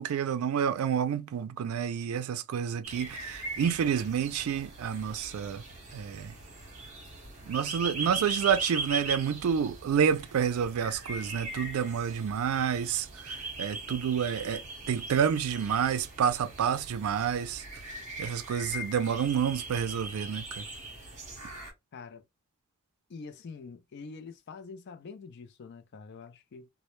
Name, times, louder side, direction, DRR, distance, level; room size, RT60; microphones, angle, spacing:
voice 1, 0.0-5.6 5.9-6.4 7.4-20.7, right 7 dB, 80° right, 0.3 m, -29 dB
sound 1, 2.8-21.7, right 3 dB, 35° right, 0.9 m, -40 dB
voice 2, 21.9-22.2 23.1-26.7, left 4 dB, 50° left, 0.4 m, -45 dB
2.0 x 2.0 x 2.9 m
head